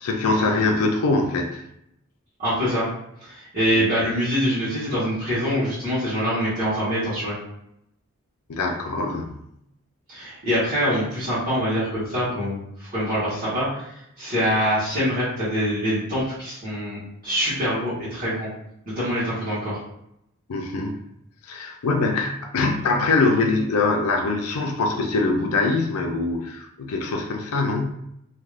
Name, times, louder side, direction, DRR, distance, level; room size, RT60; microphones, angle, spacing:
voice 1, 0.0-1.6 8.5-9.4 20.5-21.0 21.4-27.9, left 3 dB, 85° left, 3 dB, 0.5 m, -23 dB
voice 2, 2.4-2.9 3.2-7.4 10.1-18.5 18.8-19.8, equal, 40° right, -12 dB, 1.3 m, -24 dB
3.3 x 2.7 x 2.4 m, 0.78 s
head